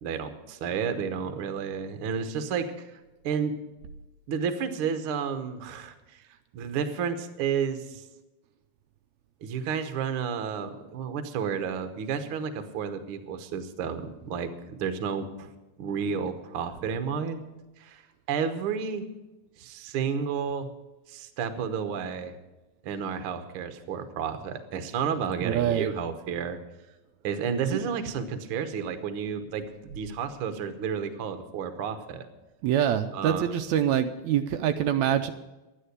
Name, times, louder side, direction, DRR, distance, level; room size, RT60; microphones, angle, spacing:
voice 1, 0.0-3.0 3.2-3.6 4.3-6.2 6.5-8.0 9.4-15.5 15.8-17.4 17.8-18.0 18.3-19.0 19.6-20.7 21.1-22.3 22.8-26.6 27.2-29.6 29.9-32.3 33.1-33.5, right 6 dB, 60° right, 8 dB, 1.6 m, -31 dB
voice 2, 25.4-25.9 32.6-35.3, right 10 dB, 80° right, 7 dB, 1.9 m, -25 dB
12.0 x 10.0 x 8.1 m, 1.1 s
omnidirectional pair, 3.3 m